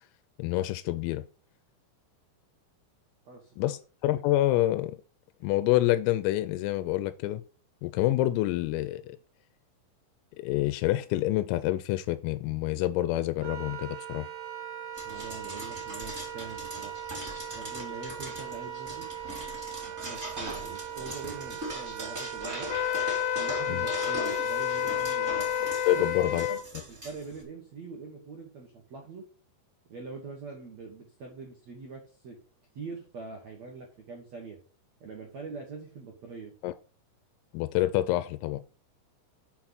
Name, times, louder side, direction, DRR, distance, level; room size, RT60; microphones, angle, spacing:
voice 1, 0.4-1.2 3.6-3.8 4.0-5.0 5.4-7.4 7.8-9.2 10.4-14.3 23.7-23.8 25.9-26.5 36.6-36.7 37.5-38.6, left 15 dB, 90° left, 3.3 m, -27 dB
voice 2, 3.2-3.7 15.0-17.0 17.5-19.0 20.0-22.7 23.4-25.5 25.9-26.6 26.9-29.2 29.9-32.4 32.7-34.6 35.0-36.5, right 4 dB, 85° right, 1.5 m, -43 dB
Wind instrument woodwind instrument, 13.4-26.1, right 9 dB, 55° right, 3.3 m, -40 dB
sound 1, 14.9-27.4, right 1 dB, 15° right, 2.7 m, -41 dB
Wind instrument woodwind instrument 2, 22.7-26.6, left 12 dB, 70° left, 2.4 m, -30 dB
6.9 x 6.0 x 5.8 m
omnidirectional pair, 5.9 m